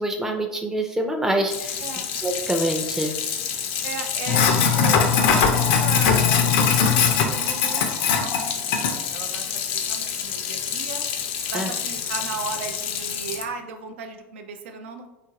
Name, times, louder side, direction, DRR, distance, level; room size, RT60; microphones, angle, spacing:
voice 1, 0.0-1.7 2.2-3.1 11.5-11.7, right 1 dB, 5° right, 3 dB, 0.4 m, -25 dB
Sink (filling or washing), 1.5-13.4, left 7 dB, 65° left, 0.4 m, -23 dB
voice 2, 1.8-2.1 3.8-11.0 11.5-15.1, right 5 dB, 70° right, 5 dB, 0.4 m, -36 dB
2.7 x 2.4 x 2.9 m, 0.99 s
hypercardioid pair, 85°, 7 cm